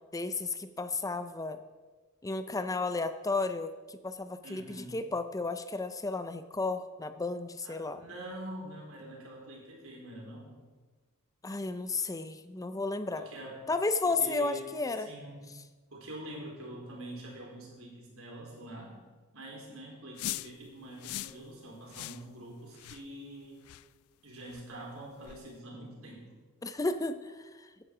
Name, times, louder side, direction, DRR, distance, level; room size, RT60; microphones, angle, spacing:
voice 1, 0.1-1.6 2.2-8.0 11.4-13.2 13.7-15.1 26.6-27.7, left 3 dB, 15° left, 10 dB, 0.5 m, -33 dB
voice 2, 4.4-5.0 7.6-10.6 13.2-13.6 14.1-14.7 15.0-15.4 15.9-19.0 19.3-23.7 24.2-26.3, right 1 dB, 75° right, -2 dB, 4.4 m, -45 dB
sound 1, 20.2-20.5 21.0-21.4 21.9-22.2 22.8-23.0 23.6-23.9 24.5-24.6 25.2-25.4, left 15 dB, 85° left, 0.3 m, -39 dB
15.5 x 10.5 x 4.9 m, 1.4 s
head